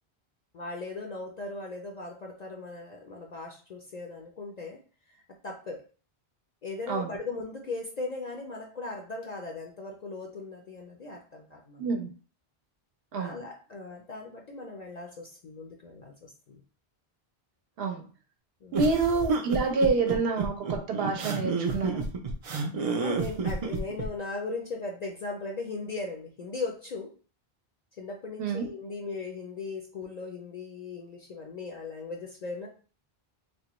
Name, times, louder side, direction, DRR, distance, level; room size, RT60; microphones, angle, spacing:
voice 1, 0.5-4.8 5.1-5.9 6.6-11.9 13.1-16.6 18.6-18.9 22.8-27.2 28.0-32.7, left 3 dB, 55° left, 0.5 m, -38 dB
sound 1, 18.7-24.1, right 4 dB, 50° right, 0.4 m, -30 dB
voice 2, 18.7-22.1 28.4-28.7, right 4 dB, 70° right, 0.8 m, -27 dB
3.4 x 2.1 x 2.9 m
omnidirectional pair, 1.0 m